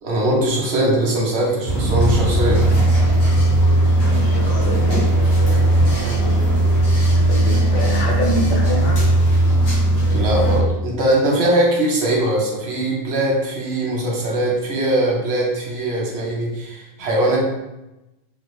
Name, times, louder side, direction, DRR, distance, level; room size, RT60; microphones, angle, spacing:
voice 1, 0.0-2.6 10.1-17.4, right 1 dB, 85° right, -2 dB, 1.1 m, -20 dB
sound 1, 1.7-10.6, right 1 dB, 85° left, 1.4 m, -17 dB
voice 2, 4.1-4.9 7.3-9.0, left 1 dB, 55° left, -1 dB, 0.8 m, -26 dB
3.8 x 2.1 x 3.1 m, 0.97 s
omnidirectional pair, 1.1 m